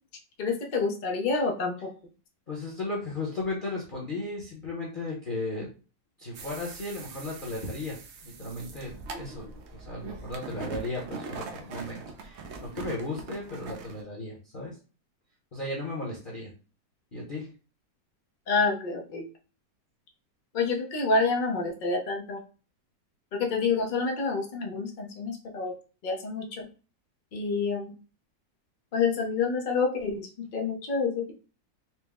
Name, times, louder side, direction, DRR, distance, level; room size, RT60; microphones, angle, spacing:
voice 1, 0.4-1.7 18.5-19.2 20.5-22.4 23.3-25.7 26.0-26.7 27.3-27.9 28.9-31.3, left 4 dB, 85° left, 1 dB, 0.4 m, -28 dB
voice 2, 2.5-5.7 6.2-14.8 15.5-16.5 17.1-17.5, left 2 dB, 40° left, -4 dB, 0.7 m, -35 dB
sound 1, 6.3-14.0, right 4 dB, 85° right, 0.6 m, -42 dB
4.3 x 2.0 x 3.4 m, 0.35 s
omnidirectional pair, 1.9 m